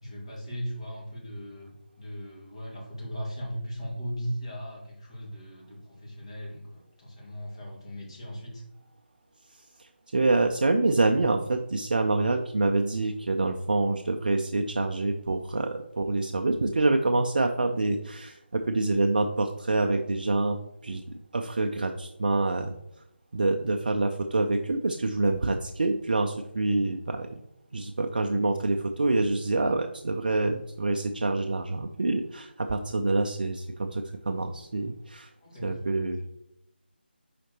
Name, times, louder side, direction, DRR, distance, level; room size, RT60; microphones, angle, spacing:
voice 1, 0.0-8.6 35.4-35.7, equal, 30° left, -3 dB, 2.0 m, -38 dB
voice 2, 9.8-20.6 20.8-21.0 21.3-22.8 23.3-27.4 27.7-35.3 35.6-36.2, right 2 dB, 50° right, 5 dB, 0.5 m, -26 dB
6.8 x 5.0 x 2.9 m, 0.80 s
figure-of-eight pair, 160°, 6 cm